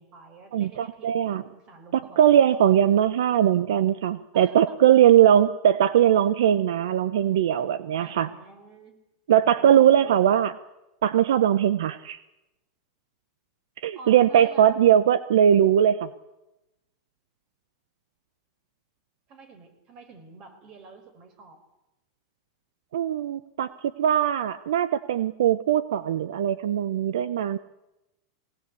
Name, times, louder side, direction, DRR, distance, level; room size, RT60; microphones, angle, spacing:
voice 1, 0.0-2.4 4.3-4.7 8.0-9.0 9.6-10.3 13.9-14.7 19.3-21.6, right 3 dB, 35° right, 8 dB, 4.9 m, -48 dB
voice 2, 0.5-1.4 1.9-8.3 9.3-10.5 11.0-12.2 13.8-16.1 22.9-23.7 24.0-27.6, right 10 dB, 80° right, 15 dB, 0.8 m, -20 dB
22.5 x 18.0 x 8.4 m, 0.96 s
supercardioid pair, 145°, 2 cm